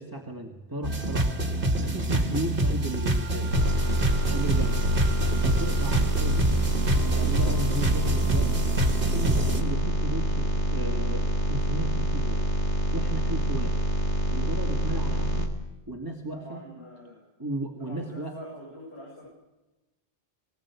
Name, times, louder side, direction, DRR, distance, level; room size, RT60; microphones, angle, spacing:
voice 1, 0.0-3.5 4.3-4.8 5.4-8.7 9.1-12.5 12.9-13.8 14.3-15.6 15.9-16.6 17.4-18.3, right 1 dB, 20° right, 2 dB, 2.0 m, -35 dB
sound 1, 0.8-9.6, right 1 dB, 50° right, 2.0 m, -26 dB
sound 2, 3.5-15.5, right 1 dB, 85° left, 3.4 m, -26 dB
voice 2, 16.3-17.2 17.8-19.3, equal, 65° left, -4 dB, 7.8 m, -44 dB
20.5 x 19.5 x 8.3 m, 1.0 s
omnidirectional pair, 1.2 m